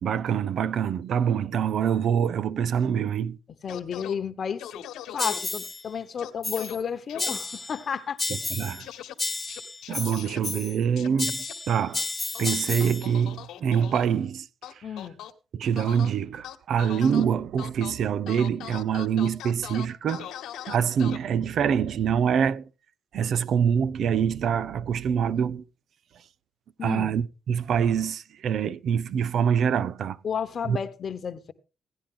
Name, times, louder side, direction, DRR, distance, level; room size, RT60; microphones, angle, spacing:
voice 1, 0.0-3.4 8.5-8.9 9.9-12.1 12.4-14.5 15.5-20.3 20.7-22.7 23.1-25.6 26.8-30.2 30.6-30.8, right 8 dB, 65° right, 0.7 m, -25 dB
voice 2, 3.6-4.6 5.1-8.2 14.8-15.2 26.8-27.2 30.2-31.5, left 7 dB, 50° left, 1.1 m, -32 dB
sound 1, 3.7-4.2 4.6-5.4 6.2-6.8 7.1-7.3 8.8-9.1 9.5-10.4 11.0-11.5 12.3-14.1 14.6-15.3 15.8-16.1 16.4-17.2 17.6-17.9 18.3-21.2, left 11 dB, 85° left, 1.4 m, -40 dB
sound 2, 5.2-5.8 6.4-6.8 7.2-7.8 8.2-8.9 9.2-10.8 11.2-13.1, left 3 dB, 25° left, 0.6 m, -32 dB
16.5 x 10.5 x 3.8 m
cardioid pair, 90°, 0 cm